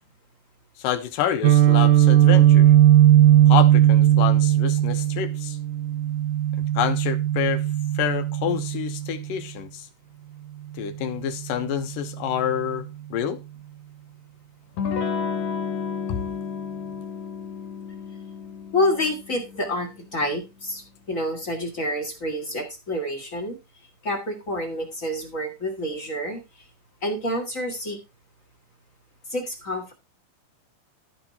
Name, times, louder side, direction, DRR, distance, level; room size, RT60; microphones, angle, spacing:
voice 1, 0.8-2.7 3.5-5.6 6.8-7.6 8.0-9.9 10.8-13.4 16.1-16.2, left 10 dB, 75° left, 2.7 m, -28 dB
Guitar, 1.4-9.3, right 12 dB, 75° right, 1.9 m, -17 dB
Electric guitar / Strum, 14.8-20.1, left 6 dB, 55° left, 2.8 m, -32 dB
voice 2, 18.7-23.6 24.0-26.4 27.0-28.0 29.3-29.9, left 1 dB, 30° left, 1.5 m, -28 dB
13.0 x 6.0 x 4.1 m
omnidirectional pair, 4.1 m